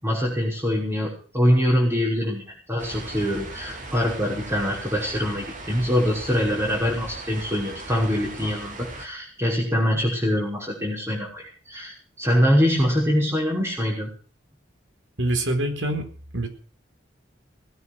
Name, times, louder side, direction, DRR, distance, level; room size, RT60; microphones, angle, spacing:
voice 1, 0.0-2.4 2.7-14.1, equal, 15° right, -6 dB, 6.0 m, -24 dB
sound 1, 2.8-9.1, right 2 dB, 45° right, 3.7 m, -38 dB
voice 2, 15.2-16.0 16.3-16.5, right 1 dB, 75° right, 6 dB, 4.3 m, -24 dB
19.5 x 9.7 x 6.5 m, 0.42 s
head